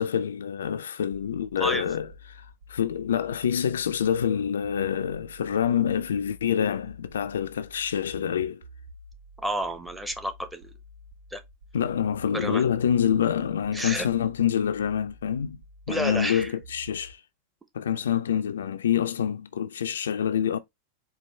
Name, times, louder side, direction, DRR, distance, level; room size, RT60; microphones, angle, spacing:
voice 1, 0.0-8.6 11.7-15.6 15.9-17.2 17.7-20.6, left 8 dB, 65° left, 0.3 m, -26 dB
sound 1, 1.1-17.1, right 1 dB, 65° right, 1.6 m, -49 dB
voice 2, 1.6-1.9 9.4-10.7 11.3-11.4 12.3-12.6 13.7-14.1 15.9-16.5, right 1 dB, 5° right, 0.7 m, -30 dB
4.5 x 2.4 x 3.3 m
figure-of-eight pair, 90°, 0 cm